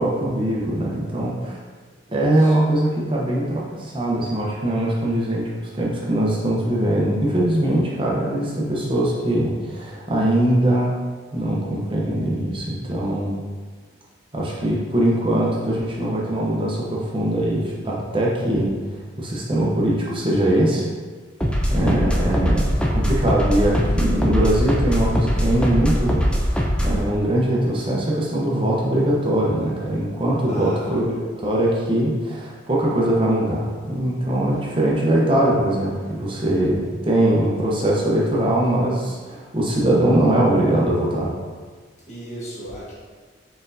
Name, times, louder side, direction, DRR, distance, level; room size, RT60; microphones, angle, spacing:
voice 1, 0.0-1.6 2.1-11.0 11.3-13.4 14.3-18.7 19.2-20.9 21.7-41.3, right 1 dB, 25° right, -4 dB, 0.7 m, -21 dB
voice 2, 2.1-2.6 22.0-22.3 30.4-31.0 36.3-36.4 42.1-42.9, right 1 dB, 35° left, -8 dB, 1.5 m, -37 dB
sound 1, 21.4-27.0, equal, 5° left, 0.3 m, -21 dB
4.4 x 4.2 x 2.7 m, 1.5 s
head